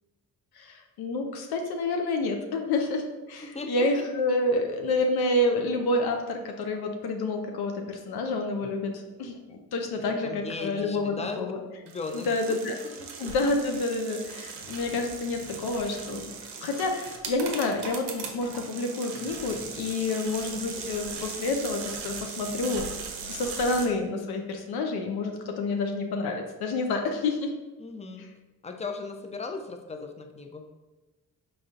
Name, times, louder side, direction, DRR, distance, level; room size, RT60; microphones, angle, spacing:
voice 1, 0.6-11.6 12.1-12.7 13.2-16.3 16.6-22.9 23.3-27.5, left 2 dB, 75° left, 3 dB, 0.5 m, -29 dB
voice 2, 3.4-4.0 8.6-8.7 10.2-11.4 11.8-12.6 12.9-13.3 21.1-21.2 27.8-28.3 28.6-30.7, left 4 dB, 15° left, 5 dB, 0.4 m, -37 dB
sound 1, 11.9-23.9, right 5 dB, 85° right, 0.6 m, -39 dB
3.7 x 3.2 x 2.5 m, 1.1 s
supercardioid pair, 50°, 39 cm